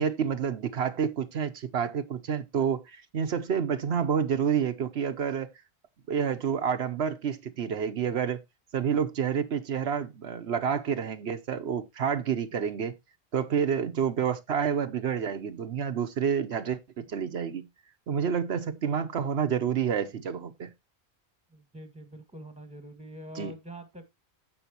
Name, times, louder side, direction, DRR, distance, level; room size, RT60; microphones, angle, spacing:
voice 1, 0.0-5.5 6.1-8.4 8.7-12.9 13.3-17.7 18.1-20.7 23.3-23.5, right 7 dB, 75° right, 1.1 m, -29 dB
voice 2, 21.5-24.1, right 1 dB, 5° right, 1.9 m, -45 dB
15.0 x 5.4 x 2.9 m
omnidirectional pair, 1.1 m